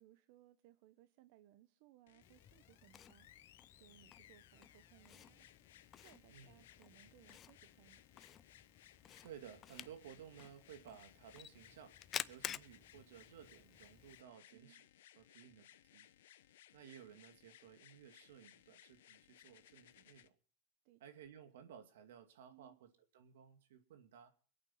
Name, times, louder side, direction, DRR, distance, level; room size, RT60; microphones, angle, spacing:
voice 1, 0.0-3.4 3.8-5.6 6.0-8.0 14.5-14.8 20.8-21.0 22.5-22.8, right 14 dB, 65° right, 12 dB, 0.8 m, -66 dB
sound 1, 2.1-20.3 21.3-21.4, left 12 dB, 90° left, 0.9 m, -64 dB
Camera, 2.2-14.2, left 9 dB, 30° left, 0.6 m, -52 dB
voice 2, 9.2-14.8 15.2-16.1 16.7-20.3 21.0-24.3, right 9 dB, 90° right, 7 dB, 2.5 m, -57 dB
22.5 x 8.8 x 5.5 m, 0.43 s
supercardioid pair, 135°, 0 cm